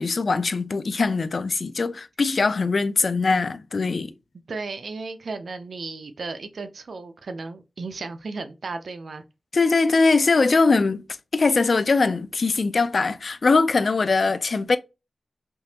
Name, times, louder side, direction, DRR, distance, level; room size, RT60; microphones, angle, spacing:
voice 1, 0.0-4.1 9.5-11.0 11.3-14.8, left 4 dB, 60° left, 0.4 m, -21 dB
voice 2, 4.5-9.2, right 3 dB, 75° right, 0.5 m, -34 dB
3.5 x 2.8 x 2.8 m
wide cardioid pair, 70°, 0 cm